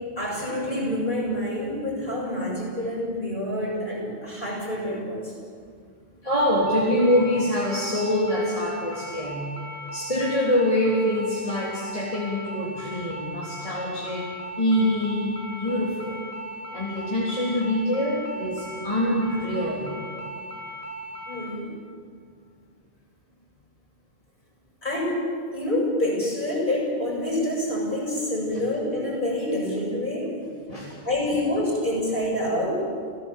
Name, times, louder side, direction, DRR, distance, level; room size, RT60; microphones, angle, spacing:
voice 1, 0.2-5.3 21.3-21.8 24.8-25.2 25.5-30.3 31.1-32.8, left 1 dB, 55° left, -3 dB, 7.1 m, -27 dB
voice 2, 6.2-9.4 9.9-14.3 14.6-16.2 16.7-19.9 30.7-31.0, left 1 dB, 35° left, -6 dB, 3.5 m, -25 dB
sound 1, 6.7-21.5, right 1 dB, 15° right, 4.8 m, -38 dB
28.5 x 16.5 x 7.5 m, 2.1 s
omnidirectional pair, 1.0 m